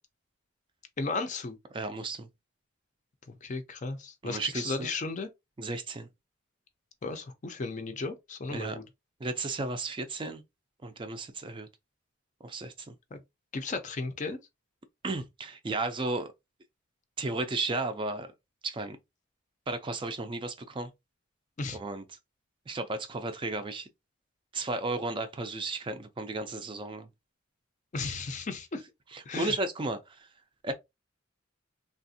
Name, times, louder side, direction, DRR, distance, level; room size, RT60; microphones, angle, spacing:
voice 1, 1.0-1.6 3.3-5.3 7.0-8.8 13.1-13.2 13.5-14.4 21.6-21.8 27.9-28.8 29.3-29.6, left 3 dB, 35° left, 0.5 m, -35 dB
voice 2, 1.7-2.3 4.2-4.9 5.6-6.1 8.5-8.8 9.2-10.4 10.8-11.7 12.4-12.9 15.0-16.3 17.2-18.3 18.6-19.0 19.7-20.9 21.7-22.0 22.7-23.9 24.5-27.1 29.1-30.3 30.6-30.7, right 2 dB, 25° right, 0.4 m, -34 dB
3.4 x 2.4 x 2.6 m
head